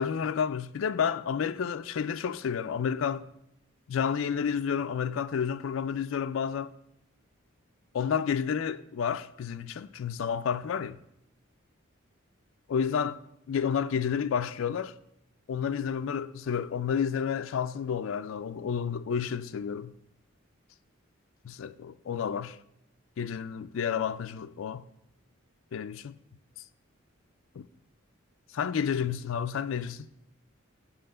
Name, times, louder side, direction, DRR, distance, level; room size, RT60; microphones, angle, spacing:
voice 1, 0.0-3.2 3.9-6.7 7.9-11.0 12.7-13.2 13.5-14.9 15.5-19.9 21.4-22.6 23.2-24.8 25.7-26.2 27.6-27.7 28.5-30.1, left 7 dB, 75° left, 0.4 m, -30 dB
7.5 x 5.7 x 6.6 m
head